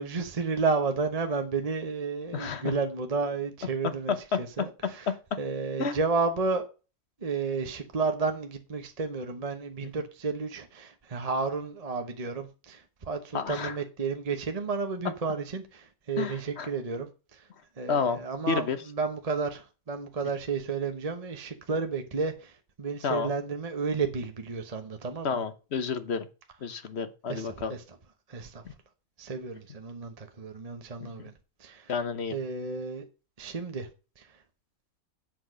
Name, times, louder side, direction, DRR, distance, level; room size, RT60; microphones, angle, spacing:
voice 1, 0.0-5.1 5.4-6.6 7.2-17.5 17.8-25.3 27.3-27.8 28.3-28.6 29.2-31.3 31.6-31.9 32.3-33.1 33.4-33.9 34.2-34.3, right 4 dB, 30° right, 1.0 m, -32 dB
voice 2, 2.3-2.7 4.1-5.1 5.8-6.0 13.3-13.7 16.2-16.7 17.9-18.2 18.5-18.8 23.0-23.3 25.2-26.3 26.6-27.8 31.0-31.3 31.9-32.3, left 5 dB, 50° left, 1.1 m, -30 dB
8.1 x 6.1 x 6.4 m
omnidirectional pair, 1.6 m